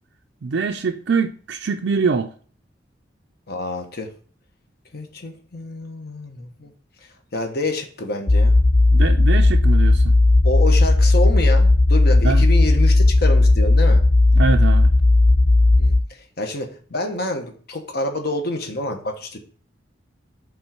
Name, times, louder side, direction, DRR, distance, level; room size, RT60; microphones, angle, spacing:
voice 1, 0.4-2.3 8.9-10.1 12.2-12.4 14.4-14.9, right 5 dB, 85° right, 0.5 m, -23 dB
voice 2, 3.5-4.1 4.9-6.7 7.3-8.6 10.4-14.0 15.8-19.4, left 2 dB, 60° left, 1.2 m, -28 dB
sound 1, 8.3-16.0, left 2 dB, 20° left, 0.3 m, -15 dB
5.4 x 3.9 x 5.9 m
head